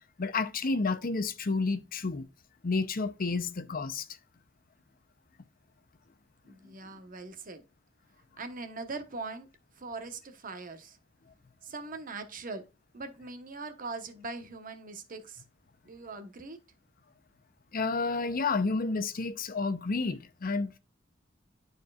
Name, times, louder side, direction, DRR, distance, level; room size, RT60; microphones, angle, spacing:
voice 1, 0.2-2.3 2.6-4.1 17.7-20.8, left 3 dB, 50° left, 0.7 m, -30 dB
voice 2, 6.4-7.6 8.3-9.5 9.7-11.0 11.6-12.6 12.9-15.4 15.8-16.6, right 3 dB, 45° right, 1.1 m, -41 dB
12.0 x 4.5 x 2.4 m
head